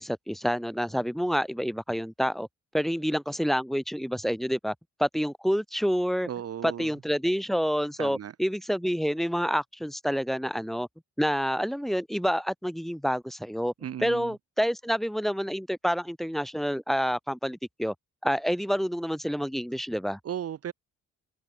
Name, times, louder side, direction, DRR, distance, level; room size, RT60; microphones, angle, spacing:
voice 1, 0.0-2.5 2.7-4.7 5.0-6.3 6.6-10.9 11.2-13.7 14.0-17.9 18.2-20.2, equal, ahead, 2.3 m, -28 dB
voice 2, 6.3-6.9 8.0-8.3 13.8-14.3 20.2-20.7, right 9 dB, 50° right, 1.1 m, -35 dB
cardioid pair, 90°, 30 cm